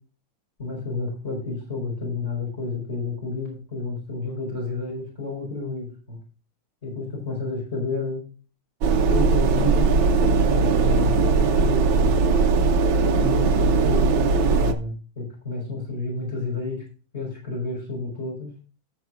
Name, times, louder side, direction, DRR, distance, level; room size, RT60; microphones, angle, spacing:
voice 1, 0.6-6.2 6.8-8.2 9.1-12.2 13.1-16.8 17.1-18.5, left 3 dB, 30° left, -3 dB, 4.9 m, -30 dB
sound 1, 8.8-14.7, right 4 dB, 70° right, 1.7 m, -19 dB
18.5 x 6.6 x 2.5 m, 0.36 s
omnidirectional pair, 2.3 m